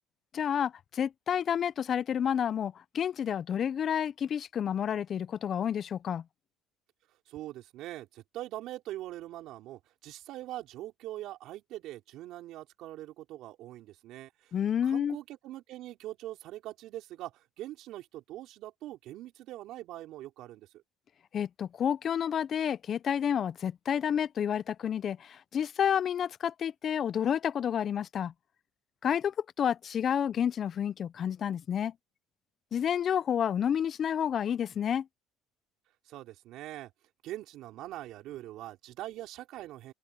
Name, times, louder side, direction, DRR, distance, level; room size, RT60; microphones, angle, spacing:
voice 1, 0.3-6.2 14.5-15.2 21.3-28.3 29.0-31.9 32.7-35.1, left 8 dB, 45° left, 0.5 m, -30 dB
voice 2, 7.3-14.6 14.8-20.8 36.1-36.9 37.2-39.9, right 15 dB, 70° right, 3.9 m, -43 dB
open air
supercardioid pair, 95°, 0 cm